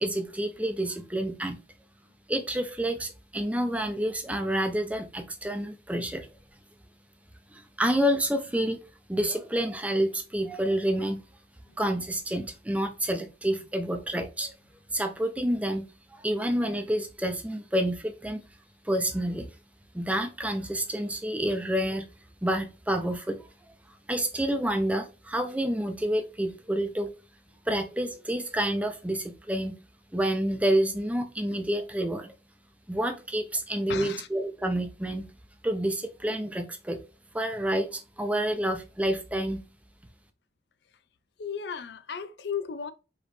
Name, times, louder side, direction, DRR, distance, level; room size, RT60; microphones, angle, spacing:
voice 1, 0.0-1.6 2.3-6.3 7.5-8.8 9.1-11.2 11.8-14.5 14.9-15.8 16.1-18.4 18.8-19.5 19.9-22.1 22.4-23.4 24.1-27.1 27.7-29.7 30.1-32.3 32.9-35.3 35.6-37.0 37.3-39.6, right 1 dB, 10° right, 0.7 m, -28 dB
voice 2, 33.9-34.3 41.4-42.9, left 6 dB, 70° left, 0.5 m, -34 dB
5.1 x 3.1 x 3.2 m
head